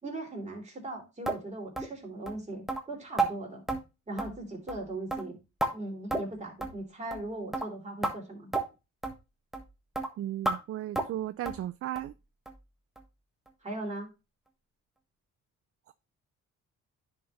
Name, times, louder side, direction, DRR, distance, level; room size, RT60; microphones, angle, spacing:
voice 1, 0.0-3.6 4.1-5.4 5.7-8.5 13.6-14.1, right 2 dB, 25° right, 3.4 m, -39 dB
sound 1, 1.3-1.4 1.8-1.9 2.3-2.4 2.7-2.8 3.2-3.3 3.7-3.8 4.2-4.4 4.7-4.8 5.1-5.7 6.1-6.3 6.6-6.8 7.1-7.3 7.5-7.7 8.0-8.1 8.5-8.6 9.0-9.2 9.5-9.7 9.9-10.1 10.4-10.6 10.9-11.2 11.5-11.6 12.0-12.1 12.5-12.6 13.0-13.1 13.5-13.6, right 2 dB, ahead, 1.3 m, -31 dB
voice 2, 10.2-12.1, right 13 dB, 50° right, 0.4 m, -35 dB
10.0 x 4.4 x 3.2 m
cardioid pair, 90°, 30 cm